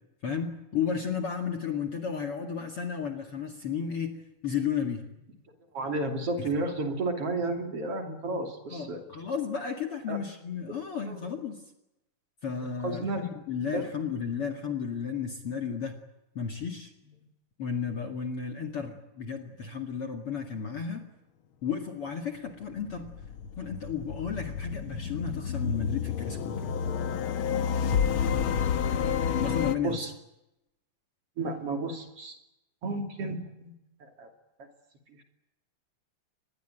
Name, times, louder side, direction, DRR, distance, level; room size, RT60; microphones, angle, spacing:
voice 1, 0.2-5.0 6.4-6.5 8.7-11.6 12.4-16.0 16.4-16.9 17.6-21.0 21.6-23.1 23.6-26.7 29.4-30.1, left 6 dB, 45° left, 4 dB, 2.6 m, -33 dB
voice 2, 5.7-9.0 10.1-10.2 11.1-11.3 12.6-13.3 13.7-13.9 29.8-30.1 31.4-32.3 32.8-33.7 34.0-34.3, right 2 dB, 45° right, 5 dB, 3.5 m, -32 dB
sound 1, 22.5-29.8, left 7 dB, 65° left, 1.3 m, -30 dB
24.5 x 20.5 x 9.1 m, 0.89 s
omnidirectional pair, 4.0 m